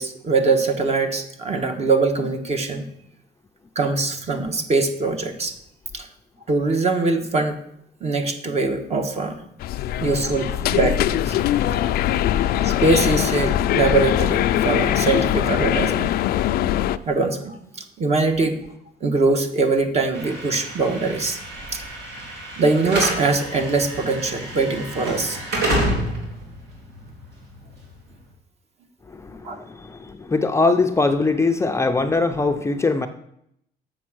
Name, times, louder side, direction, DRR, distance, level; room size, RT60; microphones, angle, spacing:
voice 1, 0.0-2.8 3.7-5.5 5.9-6.1 6.5-7.6 8.0-9.4 10.0-11.3 11.8-12.0 12.6-16.1 17.0-17.6 18.0-18.5 19.0-21.4 22.6-25.4 29.4-29.6, right 3 dB, 40° right, 6 dB, 1.2 m, -22 dB
sound 1, 9.6-17.0, left 12 dB, 65° left, 0.4 m, -21 dB
Slam / Alarm, 20.1-28.2, right 1 dB, 75° right, 2.9 m, -29 dB
voice 2, 29.1-33.1, left 3 dB, 15° left, 6 dB, 0.5 m, -21 dB
7.3 x 6.2 x 6.2 m, 0.73 s
cardioid pair, 110°, 17 cm